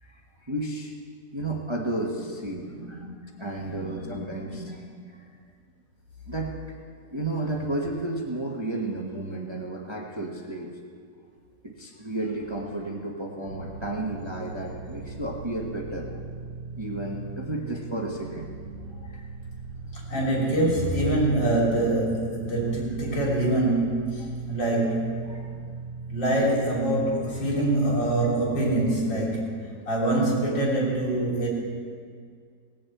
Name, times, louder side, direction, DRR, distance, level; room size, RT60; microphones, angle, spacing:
voice 1, 0.0-0.9 1.3-3.1 3.4-4.8 5.2-5.3 6.3-6.6 7.0-10.7 11.6-16.2 16.8-18.5 18.9-19.3 24.2-24.3 25.3-25.5, right 2 dB, 20° right, 0 dB, 1.1 m, -32 dB
voice 2, 2.6-4.7 19.9-25.3 26.1-31.5, right 1 dB, 85° left, -4 dB, 4.0 m, -25 dB
sound 1, 13.5-28.3, right 4 dB, 90° right, 2.0 m, -38 dB
18.0 x 7.3 x 8.3 m, 2.1 s
omnidirectional pair, 1.9 m